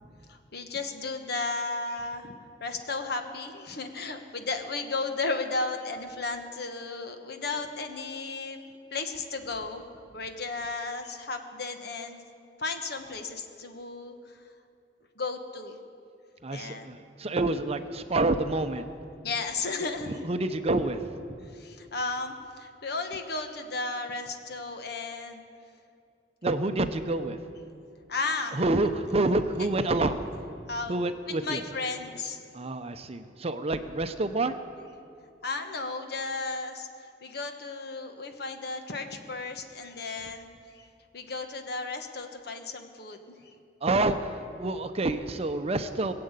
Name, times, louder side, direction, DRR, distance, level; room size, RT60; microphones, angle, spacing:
voice 1, 0.3-2.3 2.6-9.9 10.1-12.2 12.6-14.4 15.2-15.8 16.5-16.9 19.2-20.3 21.5-25.4 28.1-28.6 30.7-30.9 31.3-32.4 35.4-36.9 37.2-40.5 40.7-40.8 41.1-43.5, left 3 dB, 60° left, 6 dB, 1.3 m, -34 dB
voice 2, 16.4-18.9 19.8-21.2 26.4-27.4 28.5-30.2 30.9-31.6 32.5-34.6 43.8-46.1, right 2 dB, 35° right, 9 dB, 0.7 m, -28 dB
21.0 x 7.7 x 8.2 m, 2.5 s
head